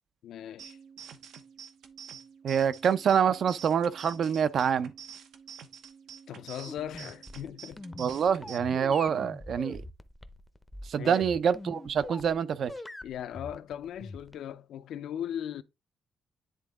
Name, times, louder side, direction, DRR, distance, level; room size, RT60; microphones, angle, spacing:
voice 1, 0.2-0.8 6.3-7.8 9.7-9.8 11.0-11.3 13.0-15.6, left 10 dB, 80° left, 0.6 m, -38 dB
sound 1, 0.6-8.6, right 8 dB, 85° right, 0.9 m, -48 dB
voice 2, 2.4-4.9 8.0-9.8 10.9-12.7, right 7 dB, 55° right, 0.5 m, -26 dB
sound 2, 6.7-12.4 12.7-14.5, left 2 dB, 10° left, 0.6 m, -43 dB
10.0 x 3.7 x 3.5 m
cardioid pair, 155°, 0 cm